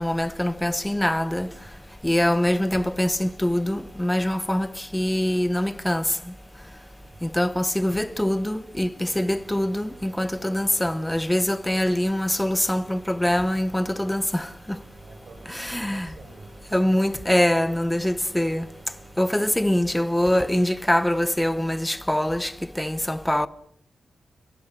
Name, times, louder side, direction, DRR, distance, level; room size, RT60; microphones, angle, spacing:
voice 1, 0.0-1.5 2.0-6.0 7.2-14.5 15.5-16.1 16.7-18.7 19.2-23.5, left 1 dB, 10° left, 1.0 m, -24 dB
voice 2, 1.6-2.0 6.9-7.2 15.0-16.6, right 2 dB, 65° right, 6.5 m, -49 dB
sound 1, 9.1-20.5, right 4 dB, 45° right, 3.6 m, -52 dB
29.0 x 22.0 x 6.2 m
wide cardioid pair, 90°, 0 cm